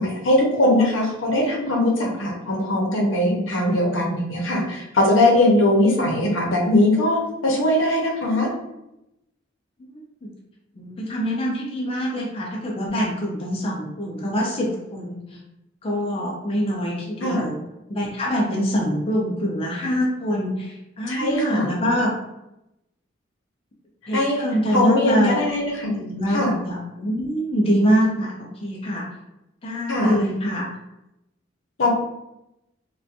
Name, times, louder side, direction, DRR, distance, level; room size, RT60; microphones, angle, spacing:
voice 1, 0.0-8.5 17.2-17.4 21.1-21.7 24.1-24.4 24.7-25.9 26.3-26.5 29.9-30.1 31.8-31.9, left 1 dB, 85° left, -1 dB, 0.7 m, -20 dB
voice 2, 10.8-15.4 15.8-17.6 17.9-22.1 24.1-25.4 26.0-29.0 29.6-30.6, equal, 30° left, -2 dB, 0.4 m, -24 dB
2.4 x 2.2 x 2.6 m, 0.88 s
head